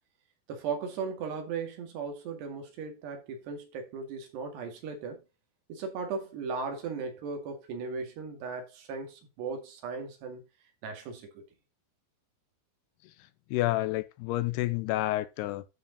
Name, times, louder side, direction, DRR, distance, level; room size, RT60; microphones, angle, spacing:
voice 1, 0.5-5.2 5.7-10.4 10.8-11.4, right 5 dB, 75° right, 4.2 m, -37 dB
voice 2, 13.0-15.7, left 16 dB, 80° left, 2.6 m, -30 dB
13.0 x 4.9 x 4.0 m
omnidirectional pair, 4.9 m